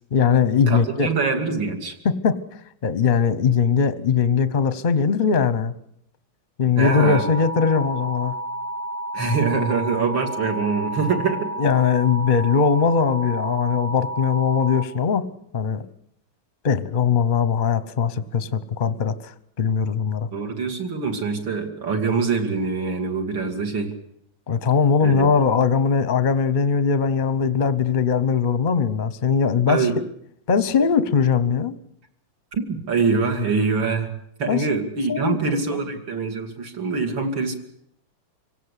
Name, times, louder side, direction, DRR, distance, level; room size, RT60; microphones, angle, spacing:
voice 1, 0.1-1.1 2.0-2.4 2.8-5.7 6.6-8.4 11.6-15.3 15.5-15.9 16.6-20.3 24.5-29.9 30.5-31.7 34.5-34.7 35.1-35.8, left 6 dB, 35° left, 14 dB, 0.8 m, -20 dB
voice 2, 0.7-1.9 6.8-7.2 9.1-11.5 20.3-23.9 25.0-25.3 29.7-29.9 32.5-34.1 34.4-37.5, right 4 dB, 65° right, 4 dB, 3.3 m, -24 dB
sound 1, 6.8-14.8, right 1 dB, 25° right, 1.0 m, -31 dB
25.0 x 17.0 x 8.3 m, 0.72 s
omnidirectional pair, 2.2 m